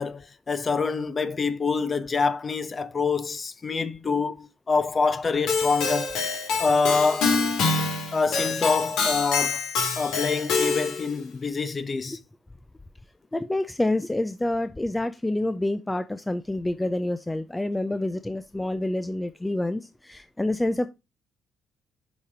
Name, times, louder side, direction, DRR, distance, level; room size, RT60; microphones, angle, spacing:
voice 1, 0.0-6.2 6.6-7.4 8.1-9.7 10.0-12.2, left 4 dB, 35° left, 0.9 m, -26 dB
Keyboard (musical), 5.5-11.1, left 4 dB, 85° left, 2.2 m, -26 dB
voice 2, 13.3-20.9, left 1 dB, 10° left, 0.5 m, -27 dB
7.0 x 5.0 x 5.0 m
cardioid pair, 90°, 0 cm